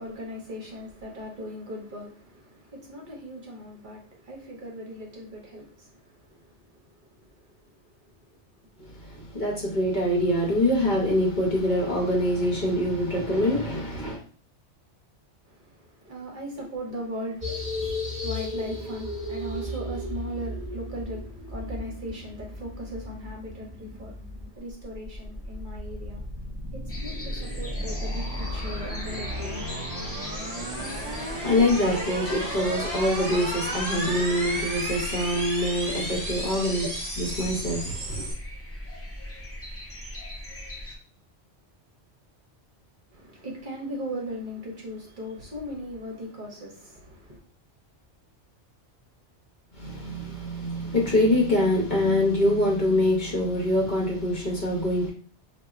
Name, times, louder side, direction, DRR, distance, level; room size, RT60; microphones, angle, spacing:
voice 1, 0.0-8.4 9.0-9.2 15.4-29.8 43.1-47.4, equal, 50° right, 0.8 m, -39 dB
voice 2, 8.9-14.2 30.6-36.9 37.2-38.3 49.7-55.1, left 1 dB, 45° left, 0.8 m, -25 dB
sound 1, 17.4-24.5, left 2 dB, 5° right, 1.0 m, -35 dB
sound 2, 24.6-38.3, right 1 dB, 35° right, 1.2 m, -33 dB
sound 3, 26.9-41.0, left 1 dB, 25° left, 0.3 m, -39 dB
4.1 x 2.3 x 2.4 m
omnidirectional pair, 1.2 m